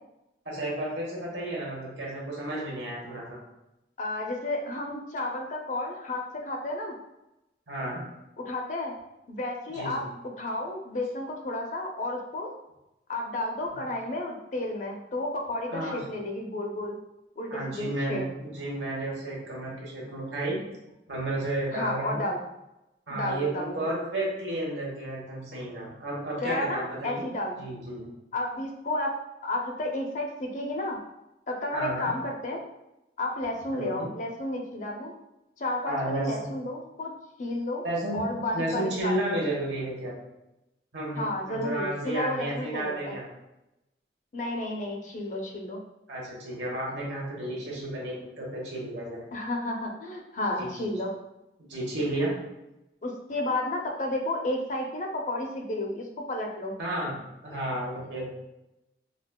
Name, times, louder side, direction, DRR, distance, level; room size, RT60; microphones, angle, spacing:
voice 1, 0.4-3.4 7.7-8.0 9.7-10.0 15.7-16.0 17.5-20.6 21.1-22.2 23.1-27.2 27.6-28.0 31.7-32.1 33.8-34.1 35.8-36.5 37.8-38.3 38.5-40.1 40.9-43.2 46.1-49.2 50.6-50.9 51.7-52.3 56.8-58.4, right 1 dB, 90° right, -4 dB, 1.2 m, -32 dB
voice 2, 4.0-6.9 8.5-8.9 9.3-10.0 10.4-12.5 13.1-17.0 17.4-18.2 21.7-22.4 23.1-23.8 26.4-27.5 28.3-29.1 29.4-31.0 31.5-32.6 33.2-35.1 35.6-37.1 37.4-37.8 38.1-39.4 41.2-43.1 44.3-45.8 49.3-51.1 53.0-56.7, left 1 dB, 45° left, 1 dB, 0.5 m, -32 dB
4.9 x 2.4 x 2.3 m, 0.92 s
head